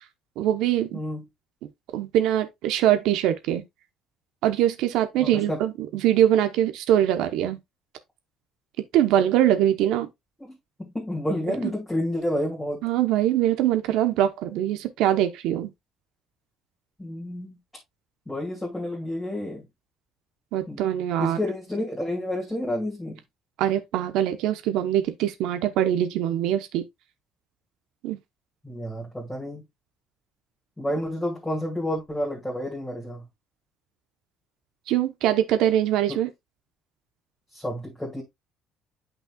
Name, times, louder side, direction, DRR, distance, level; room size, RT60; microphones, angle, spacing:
voice 1, 0.4-1.0 1.9-3.6 4.4-7.6 8.9-10.1 12.8-15.7 20.5-21.4 23.6-26.8 28.0-28.2 34.9-36.3, right 11 dB, 75° right, 1.0 m, -23 dB
voice 2, 0.9-1.2 5.2-5.6 10.4-12.8 17.0-17.6 18.3-19.7 20.7-20.8 21.2-23.2 28.6-29.6 30.8-33.3 36.1-36.2 37.5-38.2, left 1 dB, 5° left, 2.3 m, -30 dB
8.9 x 5.5 x 2.4 m
cardioid pair, 160°, 0 cm